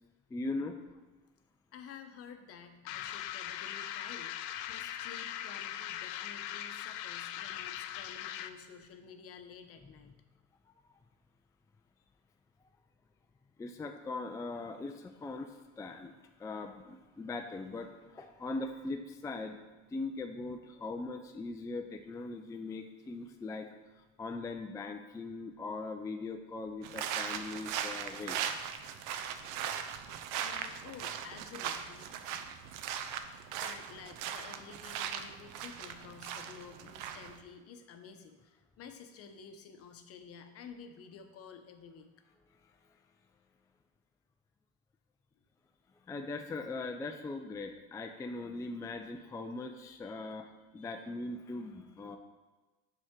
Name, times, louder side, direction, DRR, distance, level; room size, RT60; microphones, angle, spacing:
voice 1, 0.3-0.8 13.6-16.1 16.4-19.6 19.9-23.7 24.2-28.5 46.1-50.5 50.7-52.2, left 3 dB, 10° left, 4 dB, 0.3 m, -40 dB
voice 2, 1.7-10.1 30.4-32.1 33.5-42.1 49.6-50.3 50.8-51.1, left 6 dB, 50° left, 7 dB, 0.8 m, -51 dB
sound 1, 2.9-8.7, left 12 dB, 70° left, 0.5 m, -40 dB
sound 2, 26.8-37.4, right 8 dB, 70° right, 0.6 m, -39 dB
6.3 x 5.1 x 3.6 m, 1.2 s
supercardioid pair, 100°, 31 cm